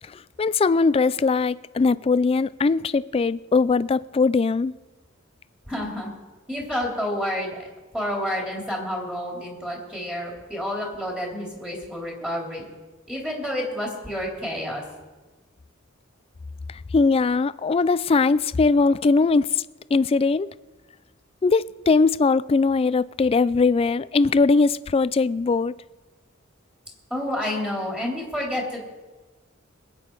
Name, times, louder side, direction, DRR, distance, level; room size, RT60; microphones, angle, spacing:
voice 1, 0.1-4.7 16.7-19.6 19.9-20.5 21.4-25.8, left 4 dB, 30° left, 0.3 m, -20 dB
voice 2, 5.7-6.1 6.5-7.6 7.9-12.7 13.1-14.8 27.1-28.8, left 1 dB, 5° right, 3.0 m, -29 dB
21.5 x 8.7 x 4.6 m
head